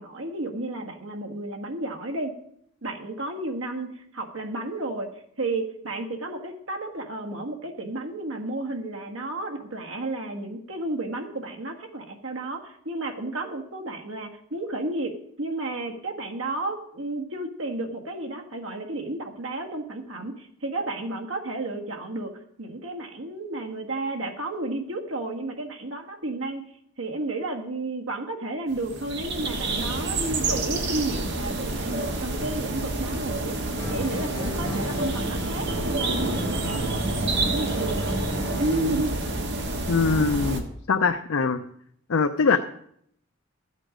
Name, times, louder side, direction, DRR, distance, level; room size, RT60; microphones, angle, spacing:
voice 1, 0.0-2.3 2.8-5.1 5.4-22.3 22.6-26.7 27.0-33.6 33.9-38.0 38.6-39.1, right 2 dB, 80° right, 3 dB, 1.6 m, -32 dB
sound 1, 28.7-40.6, right 2 dB, 60° right, 1.5 m, -29 dB
sound 2, 33.8-39.1, equal, 15° left, 4.9 m, -33 dB
voice 2, 39.9-41.6 42.1-42.6, left 4 dB, 80° left, 7 dB, 0.6 m, -22 dB
13.5 x 8.3 x 5.1 m, 0.71 s
head